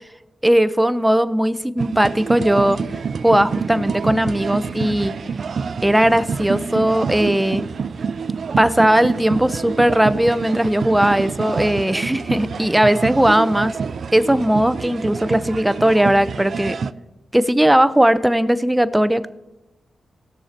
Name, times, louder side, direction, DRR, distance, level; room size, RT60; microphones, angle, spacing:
voice 1, 0.4-2.8 3.2-5.1 5.8-7.6 8.6-13.7 14.1-16.8 17.3-19.3, right 1 dB, 10° right, 14 dB, 0.7 m, -18 dB
sound 1, 1.8-16.9, right 5 dB, 65° right, 0.5 m, -27 dB
18.0 x 6.6 x 4.3 m, 1.0 s
cardioid pair, 60°, 0 cm